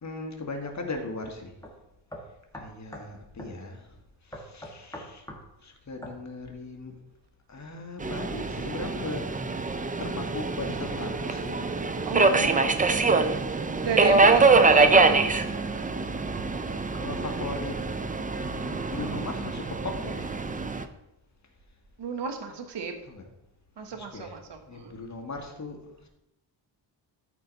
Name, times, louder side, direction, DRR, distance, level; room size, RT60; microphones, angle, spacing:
voice 1, 0.0-1.6 2.5-3.8 4.3-5.2 5.6-6.9 7.5-9.3 10.0-11.6 13.8-14.7 16.9-17.8 18.3-20.3 23.1-23.2 23.9-24.3 24.7-26.1, left 3 dB, 35° left, 2 dB, 1.8 m, -38 dB
sound 1, 0.9-1.1 1.6-1.7 2.1-3.1 3.4-3.6 4.3-5.5 6.0-6.2, equal, 5° left, 1.6 m, -42 dB
Subway metro underground, 8.0-20.8, right 3 dB, 20° right, 0.5 m, -24 dB
voice 2, 12.0-13.3 13.8-15.3 22.0-22.9 23.8-25.0, right 6 dB, 65° right, 5 dB, 1.3 m, -32 dB
13.0 x 4.5 x 4.0 m, 0.87 s
cardioid pair, 95°, 46 cm